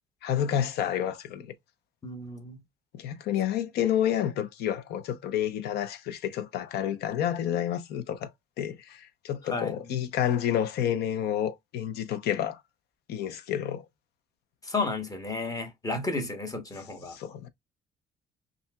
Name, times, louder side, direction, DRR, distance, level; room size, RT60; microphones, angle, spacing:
voice 1, 0.2-1.5 2.9-8.3 8.6-12.6 13.1-13.9 17.1-17.5, left 10 dB, 75° left, 0.6 m, -29 dB
voice 2, 2.0-2.6 9.4-9.8 14.6-17.2, left 3 dB, 20° left, 1.1 m, -32 dB
5.4 x 2.6 x 2.2 m
cardioid pair, 110°, 17 cm